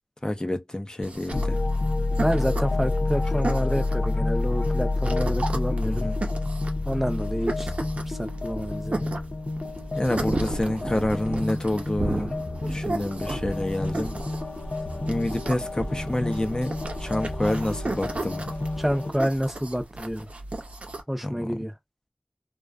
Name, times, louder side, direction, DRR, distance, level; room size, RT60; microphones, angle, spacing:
voice 1, 0.2-1.6 5.8-6.1 10.0-12.3 12.6-14.2 15.1-18.5 21.2-21.6, left 1 dB, 35° left, 0.6 m, -28 dB
sound 1, 1.0-21.0, right 2 dB, 85° right, 0.6 m, -36 dB
sound 2, 1.3-19.1, left 2 dB, 90° left, 0.4 m, -29 dB
voice 2, 2.2-6.1 6.8-7.7 8.1-9.1 18.8-20.3 21.1-21.7, equal, 10° right, 0.6 m, -28 dB
sound 3, 7.7-18.9, right 1 dB, 60° right, 0.8 m, -36 dB
2.4 x 2.3 x 2.3 m
wide cardioid pair, 45°, 2 cm